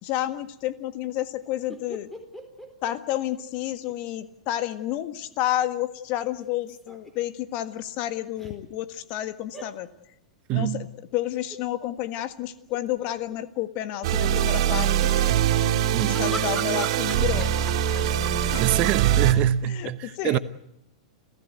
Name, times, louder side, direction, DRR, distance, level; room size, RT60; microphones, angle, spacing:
voice 1, 0.0-2.1 2.8-9.9 10.5-10.9 11.1-15.1 16.0-17.5 18.5-18.7 19.7-20.4, left 13 dB, 45° left, 1.6 m, -30 dB
sound 1, 1.7-3.9 4.2-4.3 6.4-7.1 8.4-8.5 9.5-9.7 11.5-11.9 12.4-12.5 12.7-13.4 15.3-19.0, right 1 dB, 5° left, 4.2 m, -41 dB
voice 2, 10.5-10.9 15.9-16.2 18.6-20.4, right 12 dB, 40° right, 0.9 m, -24 dB
sound 2, 14.0-19.3, right 10 dB, 55° right, 3.1 m, -23 dB
29.5 x 15.0 x 8.0 m
hypercardioid pair, 105°, 4 cm